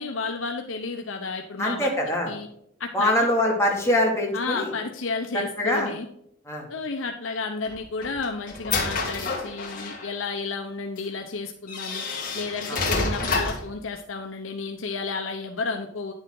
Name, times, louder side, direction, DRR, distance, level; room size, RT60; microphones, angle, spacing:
voice 1, 0.0-1.9 2.2-2.5 2.8-3.3 4.3-6.1 6.7-12.0 12.3-16.1, left 4 dB, 75° left, 4 dB, 0.9 m, -32 dB
voice 2, 1.6-2.3 2.9-4.7 5.6-5.9 6.5-6.7 12.7-12.8, left 1 dB, 15° left, -1 dB, 2.4 m, -23 dB
sound 1, 7.6-10.1 11.0-11.1 11.7-13.7, left 4 dB, 45° left, 2.1 m, -28 dB
10.0 x 7.2 x 3.8 m, 0.72 s
head